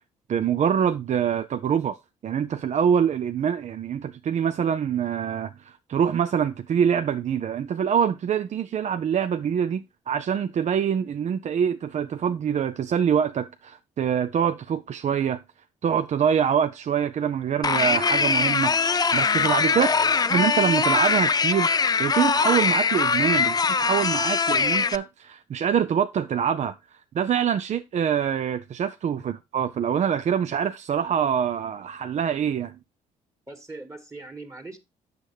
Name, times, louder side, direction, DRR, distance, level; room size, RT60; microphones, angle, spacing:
voice 1, 0.3-2.0 2.2-15.4 15.8-19.9 20.3-21.7 22.0-26.7 27.1-32.8, right 8 dB, 45° right, 0.5 m, -25 dB
sound 1, 17.6-25.0, left 5 dB, 25° left, 0.4 m, -22 dB
voice 2, 19.7-20.2 29.1-29.3 33.5-34.8, right 2 dB, 20° right, 1.7 m, -41 dB
8.0 x 6.4 x 3.2 m
hypercardioid pair, 55°, 16 cm